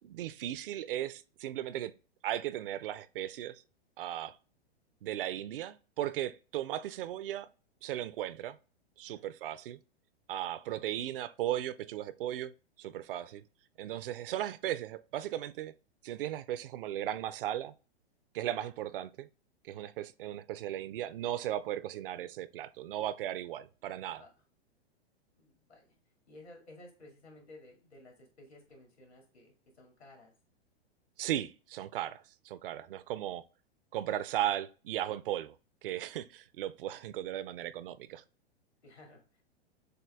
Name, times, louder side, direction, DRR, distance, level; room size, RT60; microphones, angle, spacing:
voice 1, 0.0-1.9 2.2-3.6 4.0-4.4 5.0-7.5 7.8-8.6 9.0-9.8 10.3-12.5 12.8-13.4 13.8-15.7 16.0-17.7 18.3-19.3 19.6-24.2 31.2-33.4 33.9-35.6 35.8-38.2, right 12 dB, 60° right, 0.5 m, -36 dB
voice 2, 25.4-25.9 26.3-30.3 38.8-39.4, left 2 dB, 85° left, 2.3 m, -55 dB
6.6 x 2.3 x 3.3 m
hypercardioid pair, 110°, 32 cm